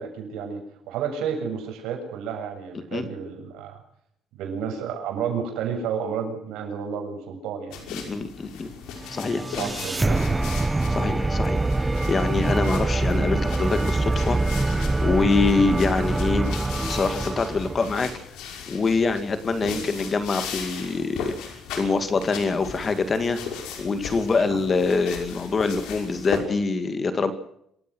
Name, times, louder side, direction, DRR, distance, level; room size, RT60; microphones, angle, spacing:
voice 1, 0.0-3.8 4.3-7.9 9.3-10.4 19.6-19.8 24.5-24.6, right 7 dB, 85° right, 4 dB, 7.3 m, -31 dB
voice 2, 2.7-3.1 7.9-8.7 9.1-9.8 10.9-18.1 18.7-23.4 23.8-27.3, left 4 dB, 25° left, 10 dB, 2.0 m, -25 dB
sound 1, 7.7-26.4, left 7 dB, 85° left, 5.7 m, -38 dB
sound 2, 9.0-18.1, right 2 dB, 10° right, 0.9 m, -25 dB
27.0 x 15.5 x 6.3 m, 0.72 s
cardioid pair, 145°, 0 cm